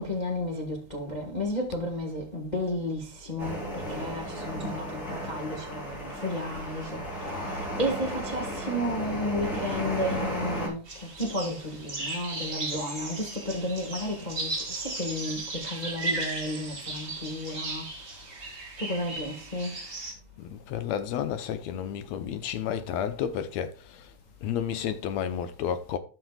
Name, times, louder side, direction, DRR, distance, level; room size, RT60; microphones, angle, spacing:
voice 1, 0.0-17.9 18.8-19.8, left 1 dB, 55° left, 0.4 m, -33 dB
sound 1, 3.4-10.7, equal, 30° left, 3.6 m, -34 dB
sound 2, 10.9-20.1, right 2 dB, 25° right, 1.8 m, -36 dB
voice 2, 20.4-24.1 24.4-26.0, left 9 dB, 70° left, 1.9 m, -31 dB
12.5 x 6.2 x 2.3 m
omnidirectional pair, 3.5 m